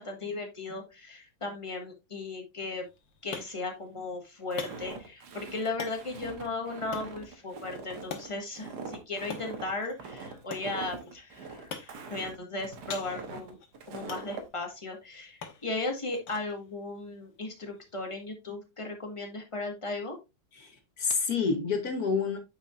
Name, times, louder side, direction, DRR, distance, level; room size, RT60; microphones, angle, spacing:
voice 1, 0.0-2.8 3.2-13.6 13.9-20.2, left 2 dB, 15° left, 1.4 m, -36 dB
sound 1, 2.7-18.3, left 6 dB, 70° left, 1.9 m, -47 dB
Walk footsteps, 4.5-14.5, right 4 dB, 55° right, 1.6 m, -43 dB
voice 2, 20.5-22.4, left 5 dB, 50° left, 1.5 m, -29 dB
8.7 x 5.7 x 2.5 m
omnidirectional pair, 2.2 m